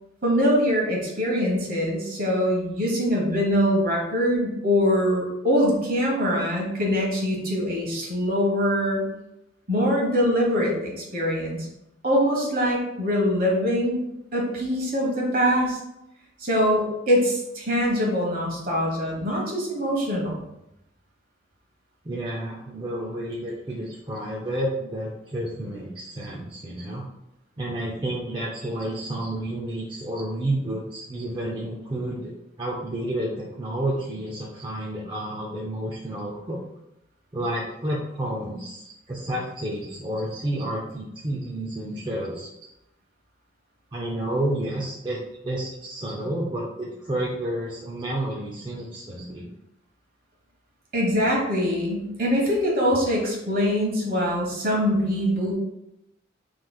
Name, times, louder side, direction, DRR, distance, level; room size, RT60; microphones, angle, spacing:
voice 1, 0.2-9.1 9.7-11.7 12.0-14.0 14.3-15.8 16.4-20.4 29.2-29.3 50.9-55.5, equal, 50° right, -2 dB, 1.3 m, -23 dB
voice 2, 22.0-27.0 27.6-32.3 32.6-36.6 37.3-42.5 43.9-49.5, right 1 dB, 25° right, -5 dB, 0.5 m, -30 dB
5.7 x 3.2 x 2.3 m, 0.85 s
head